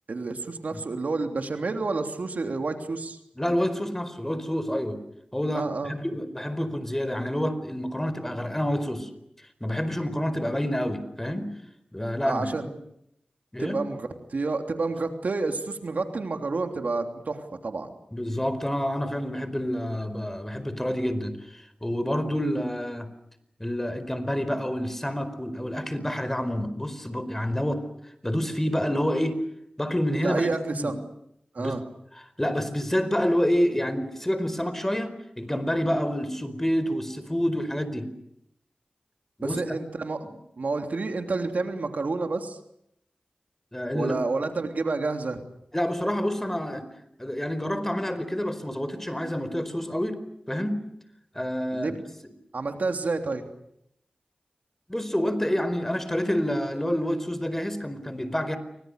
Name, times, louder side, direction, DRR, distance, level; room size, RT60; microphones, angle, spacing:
voice 1, 0.1-3.2 5.5-5.9 12.2-12.6 13.6-17.9 30.2-30.9 31.5-31.8 35.8-36.0 39.4-40.2 40.6-42.6 43.9-45.4 51.7-51.9 52.5-53.4, right 3 dB, 75° right, 5 dB, 3.2 m, -29 dB
voice 2, 3.4-5.0 5.3-9.1 9.6-11.5 11.9-12.6 13.5-13.8 18.1-23.1 23.6-29.4 29.8-30.9 31.6-31.8 32.4-38.1 39.4-39.6 43.7-44.1 45.7-46.9 47.2-50.2 50.5-50.8 51.3-52.0 54.9-58.6, equal, 15° left, 12 dB, 4.6 m, -28 dB
29.0 x 25.0 x 6.7 m, 0.77 s
cardioid pair, 50°, 3 cm